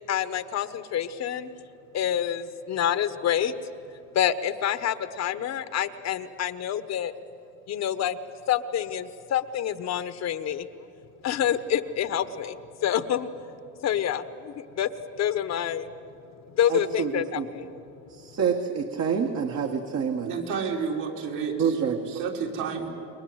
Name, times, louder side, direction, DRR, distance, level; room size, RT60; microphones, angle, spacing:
voice 1, 0.1-1.5 1.9-3.5 4.1-7.1 7.7-8.2 8.5-10.7 11.2-12.6 12.8-13.3 13.8-14.9 15.2-15.9 16.5-17.7, left 10 dB, 50° left, 12 dB, 1.2 m, -27 dB
voice 2, 16.7-17.5 18.1-20.3 21.6-22.2, right 6 dB, 50° right, 3 dB, 1.8 m, -27 dB
voice 3, 20.2-21.8 22.1-22.9, right 6 dB, 65° right, -1 dB, 4.6 m, -30 dB
28.5 x 21.5 x 8.0 m, 2.7 s
supercardioid pair, 100°, 34 cm